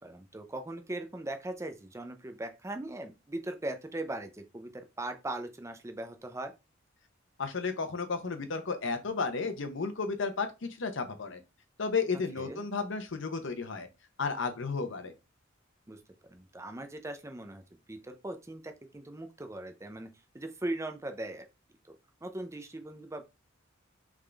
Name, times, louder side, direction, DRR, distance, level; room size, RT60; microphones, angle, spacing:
voice 1, 0.0-6.5 12.4-12.6 15.9-16.0 16.3-20.1 20.3-21.5 21.8-22.0 22.2-23.2, right 1 dB, 15° right, 0.6 m, -39 dB
voice 2, 7.4-11.4 11.8-13.9 14.2-15.1, left 4 dB, 65° left, 0.8 m, -33 dB
3.7 x 3.6 x 3.4 m
head